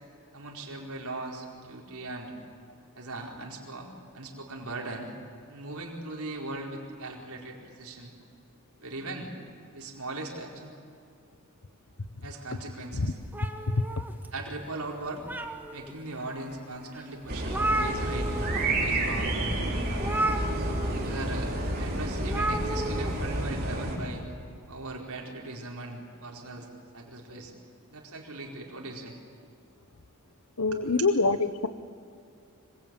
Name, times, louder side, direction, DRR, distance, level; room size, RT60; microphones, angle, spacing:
voice 1, 0.3-2.3 2.9-5.1 5.5-8.1 8.8-9.3 9.7-10.7 12.2-13.2 14.3-15.2 15.7-18.3 18.7-19.4 21.0-24.2 24.7-26.7 26.9-27.5 27.9-29.2 30.7-30.9, right 2 dB, 75° right, -1 dB, 4.6 m, -39 dB
sound 1, 13.3-14.5 15.0-15.9 16.5-16.6 17.0-17.1 17.2-18.6 18.9-19.1 20.0-21.0 22.2-23.1, right 1 dB, 10° right, 1.5 m, -32 dB
sound 2, 17.3-24.0, right 1 dB, 45° right, 4.8 m, -30 dB
voice 2, 30.6-31.7, left 3 dB, 75° left, 13 dB, 1.1 m, -25 dB
25.5 x 24.0 x 9.0 m, 2.4 s
head